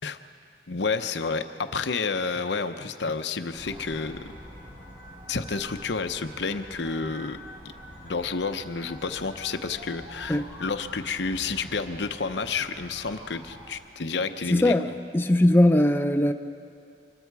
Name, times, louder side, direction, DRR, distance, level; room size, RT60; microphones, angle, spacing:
voice 1, 0.7-4.3 5.3-7.4 8.0-14.8, left 4 dB, 75° left, 9 dB, 0.8 m, -30 dB
sound 1, 3.5-13.7, equal, 25° right, 4.8 m, -45 dB
voice 2, 14.5-16.3, left 1 dB, 15° left, 5 dB, 0.6 m, -20 dB
25.0 x 22.0 x 4.8 m, 2.4 s
head